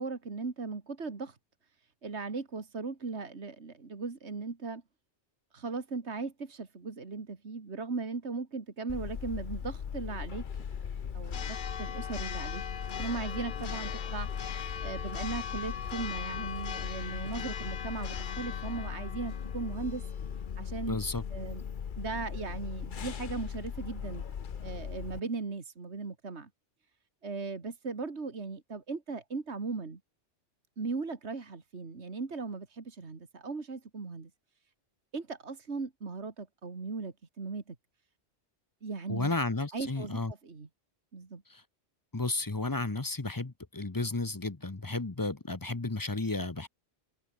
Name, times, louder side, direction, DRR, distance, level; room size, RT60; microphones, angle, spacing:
voice 1, 0.0-1.4 2.0-4.8 5.5-10.4 11.1-12.6 13.0-14.3 14.8-20.0 20.6-21.0 21.3-21.6 22.0-24.2 24.6-26.5 27.2-30.0 30.8-34.3 35.1-37.8 38.8-39.3 39.7-40.7 41.1-41.4, right 4 dB, 70° right, 2.5 m, -38 dB
Church bell, 8.9-25.2, left 7 dB, 50° left, 0.9 m, -37 dB
voice 2, 20.9-21.2 39.1-40.3 41.5-41.6 42.1-46.7, left 2 dB, 20° left, 0.9 m, -33 dB
omnidirectional pair, 1.2 m